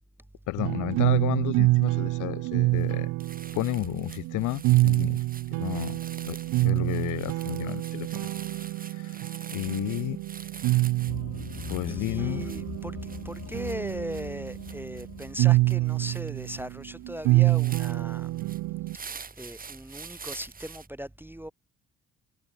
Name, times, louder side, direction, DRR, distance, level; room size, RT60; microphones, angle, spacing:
voice 1, 0.5-3.1 3.5-5.2 5.5-6.0 6.3-6.4 6.6-8.3 8.9-9.2 9.5-10.2 11.7-12.5, left 19 dB, 90° left, 0.7 m, -32 dB
sound 1, 0.6-19.0, right 20 dB, 85° right, 0.5 m, -27 dB
sound 2, 2.8-2.9 3.2-20.9, right 5 dB, 30° right, 1.5 m, -46 dB
sound 3, 11.1-16.2, left 8 dB, 50° left, 2.7 m, -42 dB
voice 2, 11.9-13.0 13.2-18.3 19.4-21.5, equal, 5° right, 0.6 m, -38 dB
cardioid pair, 90°, 30 cm